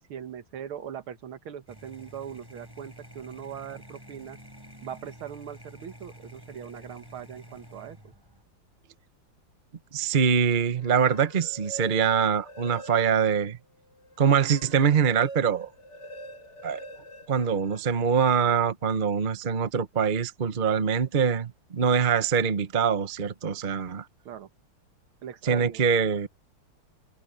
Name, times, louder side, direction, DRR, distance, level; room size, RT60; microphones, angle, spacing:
voice 1, 0.1-4.4 4.8-8.1 24.3-24.5 25.2-25.8, right 9 dB, 75° right, 2.1 m, -40 dB
sound 1, 1.7-8.4, equal, 10° right, 6.7 m, -49 dB
voice 2, 9.9-13.6 14.2-15.7 16.6-16.8 17.3-24.0 25.4-26.3, right 7 dB, 40° right, 0.7 m, -24 dB
sound 2, 10.7-13.3 13.8-18.1, right 1 dB, 35° left, 2.0 m, -44 dB
omnidirectional pair, 2.4 m